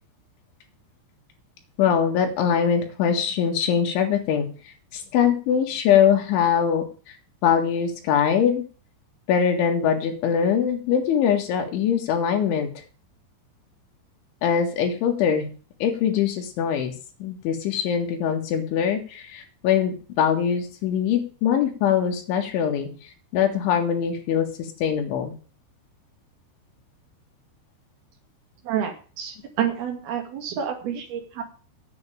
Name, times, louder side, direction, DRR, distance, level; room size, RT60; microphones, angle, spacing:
voice 1, 1.8-4.5 4.9-6.8 7.4-8.6 9.3-12.7 14.4-15.5 15.8-16.9 17.2-22.9 23.3-25.3, left 8 dB, 70° left, 4 dB, 4.2 m, -22 dB
voice 2, 28.6-31.4, right 9 dB, 55° right, 4 dB, 3.6 m, -29 dB
9.4 x 8.0 x 8.9 m, 0.38 s
omnidirectional pair, 5.7 m